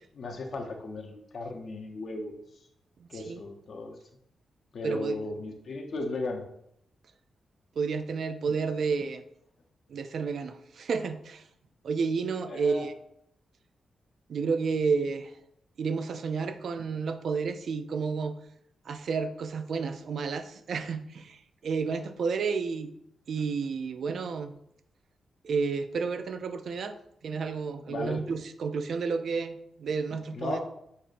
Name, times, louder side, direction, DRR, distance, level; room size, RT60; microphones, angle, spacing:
voice 1, 0.1-2.3 3.1-4.0 4.7-6.4 12.5-12.8 27.9-28.2 30.3-30.6, left 2 dB, 60° left, 2 dB, 0.8 m, -35 dB
voice 2, 3.0-3.4 4.8-5.2 7.8-9.2 9.9-11.4 11.8-12.9 14.3-15.3 15.8-18.4 18.9-22.9 23.3-24.5 25.4-27.0 27.2-30.6, right 5 dB, 65° right, 9 dB, 0.3 m, -31 dB
6.4 x 2.7 x 2.5 m, 0.74 s
wide cardioid pair, 120°, 0 cm